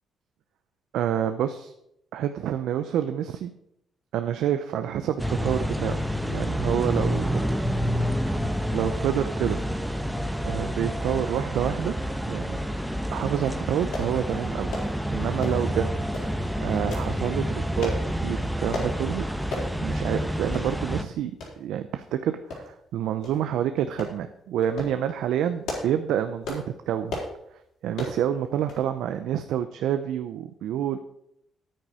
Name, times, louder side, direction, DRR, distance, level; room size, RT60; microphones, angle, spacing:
voice 1, 0.9-1.7 2.1-3.5 4.1-7.4 8.2-9.6 10.4-11.9 12.3-12.6 13.1-14.7 15.1-15.9 16.6-18.0 18.2-19.3 19.6-27.2 27.5-31.0, right 10 dB, 85° right, 8 dB, 0.6 m, -28 dB
sound 1, 5.2-21.0, equal, 5° right, 1.0 m, -28 dB
Close Combat Baseball Bat Head Hits Multiple, 13.9-14.1 14.7-14.9 15.4-15.7 16.1-16.3 16.9-17.1 17.8-18.0 18.7-18.9 19.5-19.7 20.1-20.2 20.5-20.7 21.4-21.5 22.5-22.9 23.2-23.4 24.0-24.2 24.6-24.9 25.4-26.0 26.4-26.7 27.1-27.3 27.9-28.2 28.7-28.9 29.2-29.3, left 2 dB, 80° left, 4.3 m, -34 dB
10.5 x 9.0 x 4.9 m, 0.77 s
cardioid pair, 90°, 0 cm